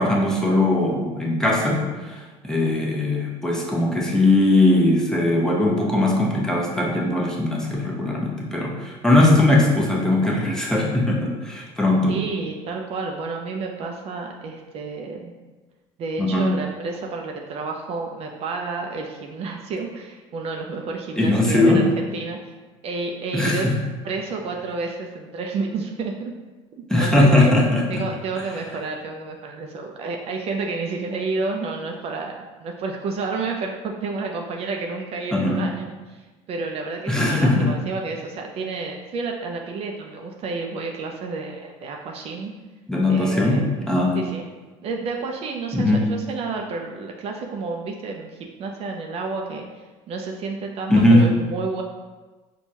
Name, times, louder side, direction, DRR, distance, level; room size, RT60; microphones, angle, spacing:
voice 1, 0.0-12.2 16.2-16.5 21.2-21.9 23.3-23.7 26.9-28.0 35.3-35.6 37.1-37.7 42.9-44.2 45.7-46.1 50.9-51.3, left 2 dB, 5° left, -3 dB, 0.7 m, -19 dB
voice 2, 12.1-15.3 16.0-22.5 22.8-23.7 24.0-26.3 26.7-27.5 27.9-32.3 32.6-42.5 43.1-43.7 44.2-44.5 44.8-51.8, right 3 dB, 45° right, 2 dB, 0.4 m, -30 dB
4.4 x 2.2 x 2.7 m, 1.3 s
supercardioid pair, 105°, 14 cm